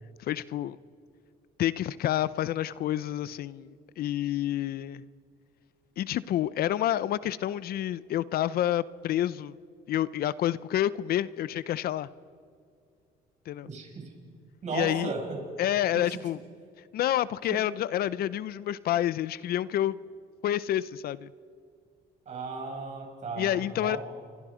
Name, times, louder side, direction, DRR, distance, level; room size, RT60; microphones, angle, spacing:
voice 1, 0.2-0.8 1.6-5.0 6.0-9.5 9.9-12.1 13.5-13.7 14.7-15.1 15.6-16.4 16.9-20.0 20.4-21.3 23.4-24.0, left 12 dB, 65° left, 18 dB, 0.7 m, -28 dB
voice 2, 13.6-14.1 14.6-15.4 15.9-16.3 17.5-17.6 22.2-24.0, right 4 dB, 45° right, 1 dB, 6.8 m, -35 dB
29.0 x 24.5 x 5.1 m, 2.3 s
cardioid pair, 110°, 17 cm